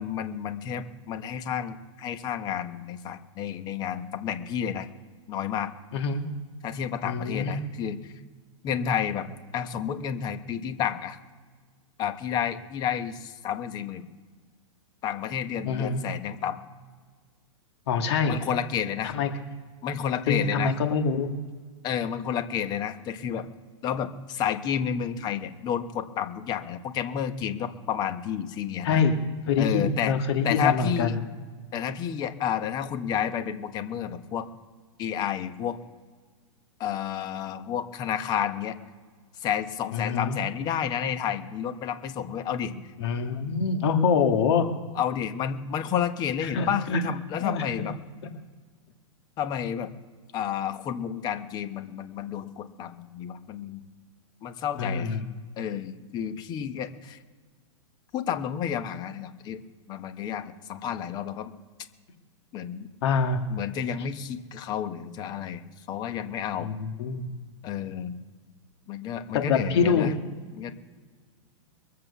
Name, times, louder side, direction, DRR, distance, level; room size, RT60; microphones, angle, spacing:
voice 1, 0.0-4.9 5.3-5.7 6.6-8.1 8.6-9.3 9.5-11.2 12.0-14.0 15.0-16.6 18.3-19.1 19.8-20.7 21.8-23.5 23.8-29.0 29.6-30.1 30.4-31.2 31.7-34.5 35.0-35.8 36.8-38.8 39.4-42.7 44.9-48.0 49.4-49.9 50.3-53.8 54.4-55.2 55.6-57.2 58.1-59.6 59.9-61.5 62.5-62.9 63.5-66.7 67.6-68.2 68.9-70.1 70.5-70.7, left 9 dB, 25° left, 10 dB, 1.1 m, -30 dB
voice 2, 5.9-6.2 7.0-7.6 15.7-16.0 17.9-18.4 19.1-19.3 20.3-21.3 28.8-31.2 39.9-40.4 43.0-44.7 46.5-47.0 47.4-47.9 48.2-48.3 54.8-55.2 63.0-63.4 66.6-67.2 69.3-70.1, left 5 dB, 55° left, 4 dB, 1.9 m, -25 dB
22.0 x 7.7 x 7.0 m, 1.5 s
hypercardioid pair, 150°, 16 cm